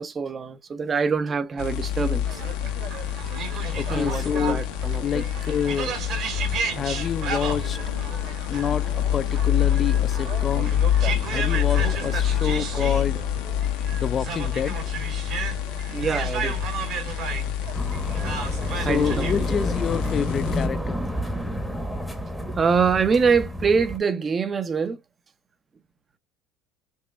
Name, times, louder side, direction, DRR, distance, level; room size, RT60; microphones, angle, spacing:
voice 1, 0.0-2.5 3.9-5.3 15.9-16.7 18.8-19.6 22.4-25.0, right 5 dB, 25° right, 0.6 m, -25 dB
sound 1, 1.6-20.7, left 10 dB, 75° left, 0.7 m, -27 dB
sound 2, 2.2-20.2, right 6 dB, 55° right, 1.7 m, -34 dB
voice 2, 3.8-4.7 5.0-6.0 6.8-7.8 8.4-10.8 11.3-13.2 13.9-14.9 18.8-21.0, left 7 dB, 35° left, 0.3 m, -28 dB
sound 3, 17.7-24.0, equal, ahead, 0.9 m, -30 dB
5.4 x 2.9 x 2.3 m
supercardioid pair, 115°, 0 cm